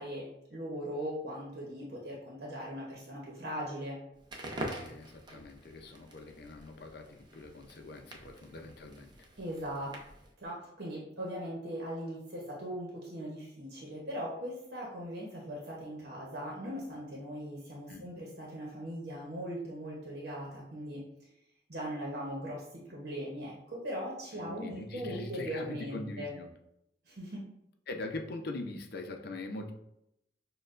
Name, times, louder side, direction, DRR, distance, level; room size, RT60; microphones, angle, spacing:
voice 1, 0.0-4.0 9.4-10.0 10.4-21.0 21.7-26.3 27.1-27.4, equal, 65° right, -4 dB, 0.9 m, -39 dB
Crackle, 4.2-10.3, right 1 dB, 25° right, 0.6 m, -45 dB
voice 2, 4.8-9.1 17.9-18.0 24.3-26.5 27.9-29.7, left 2 dB, 65° left, 4 dB, 0.6 m, -42 dB
6.5 x 2.3 x 2.5 m, 0.81 s
head